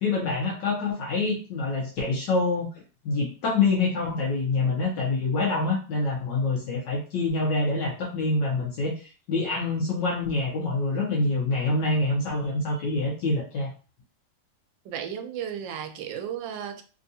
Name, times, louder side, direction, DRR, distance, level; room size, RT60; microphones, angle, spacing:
voice 1, 0.0-2.7 3.0-13.7, left 3 dB, 75° left, 1.4 m, -26 dB
voice 2, 14.8-16.8, right 9 dB, 80° right, 1.2 m, -34 dB
3.5 x 2.5 x 2.7 m
omnidirectional pair, 2.1 m